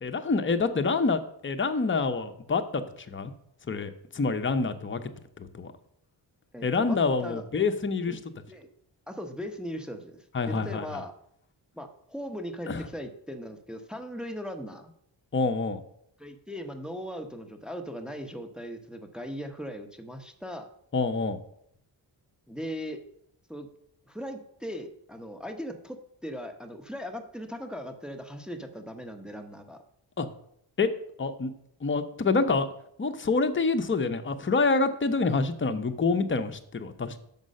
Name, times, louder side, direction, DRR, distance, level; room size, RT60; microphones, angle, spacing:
voice 1, 0.0-3.3 3.7-5.7 6.6-8.2 10.3-11.0 12.7-12.8 15.3-15.8 20.9-21.4 30.2-30.3 30.8-30.9 31.2-31.5 31.8-32.7 33.0-37.2, left 4 dB, 25° left, 8 dB, 0.7 m, -27 dB
voice 2, 6.5-7.4 8.1-8.2 8.5-8.7 9.1-11.1 11.7-14.9 16.2-20.7 22.5-23.0 23.5-23.7 24.1-26.0 26.2-29.8, equal, ahead, 5 dB, 0.9 m, -39 dB
6.4 x 5.3 x 6.4 m, 0.71 s
cardioid pair, 80°, 46 cm